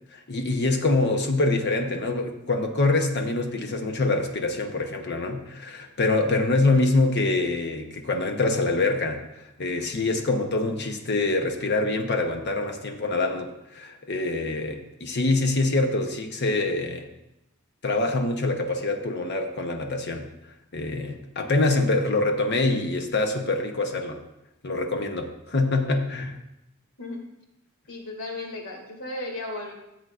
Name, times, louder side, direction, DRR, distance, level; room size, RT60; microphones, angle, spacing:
voice 1, 0.1-17.1 17.8-20.3 20.7-24.2 24.6-26.4, left 2 dB, 50° left, 4 dB, 0.8 m, -25 dB
voice 2, 27.9-29.7, left 2 dB, 75° left, -1 dB, 2.6 m, -35 dB
15.0 x 7.9 x 2.5 m, 0.87 s
head